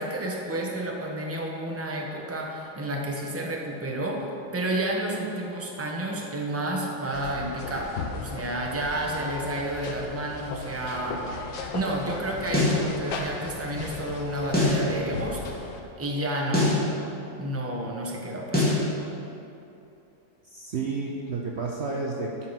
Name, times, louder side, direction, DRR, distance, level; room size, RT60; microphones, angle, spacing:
voice 1, 0.0-4.3 4.5-16.8 17.3-18.8, right 1 dB, 10° right, -1 dB, 0.7 m, -31 dB
sound 1, 7.1-15.8, left 4 dB, 75° left, 1.7 m, -37 dB
sound 2, 12.5-12.8 14.5-14.8 16.5-16.8 18.5-18.8, left 2 dB, 5° left, 2.3 m, -22 dB
voice 2, 20.5-22.5, right 4 dB, 75° right, -1 dB, 0.6 m, -31 dB
12.0 x 5.8 x 5.8 m, 2.8 s
omnidirectional pair, 2.2 m